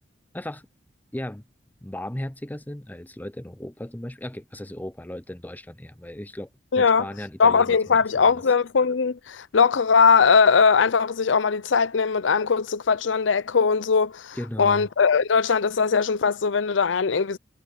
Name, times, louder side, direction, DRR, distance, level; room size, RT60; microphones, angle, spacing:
voice 1, 0.3-0.7 1.1-1.4 1.8-6.5 6.8-8.4 14.3-14.9, left 1 dB, 10° left, 0.7 m, -36 dB
voice 2, 6.7-7.0 7.4-17.4, left 5 dB, 85° left, 0.6 m, -20 dB
head